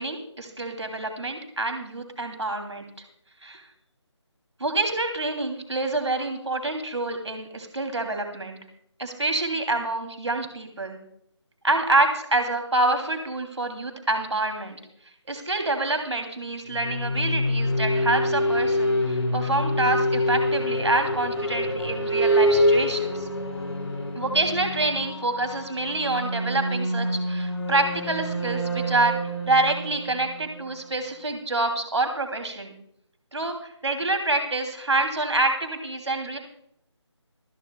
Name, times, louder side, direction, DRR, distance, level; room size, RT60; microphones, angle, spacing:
voice 1, 0.0-2.8 3.4-3.6 4.6-8.6 9.0-11.0 11.6-14.8 15.3-23.3 24.2-29.2 29.5-32.7 33.3-36.4, right 2 dB, 70° right, 4 dB, 2.8 m, -27 dB
sound 1, 16.7-31.3, equal, 65° left, 4.2 m, -26 dB
25.5 x 11.0 x 2.3 m, 0.69 s
figure-of-eight pair, 165°, 15 cm